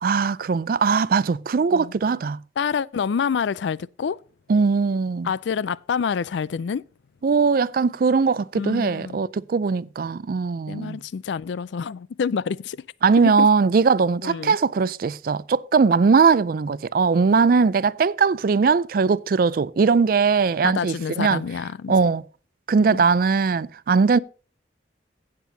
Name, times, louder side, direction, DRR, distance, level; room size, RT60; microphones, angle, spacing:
voice 1, 0.0-2.4 4.5-5.3 7.2-11.0 13.0-21.4 21.9-22.2 22.7-24.2, right 5 dB, 50° right, 0.4 m, -20 dB
voice 2, 2.6-4.2 5.2-6.8 8.5-9.2 10.7-12.8 13.2-13.5 14.2-14.6 20.6-21.9 22.8-23.1, left 6 dB, 75° left, 0.4 m, -27 dB
16.5 x 7.6 x 2.7 m
head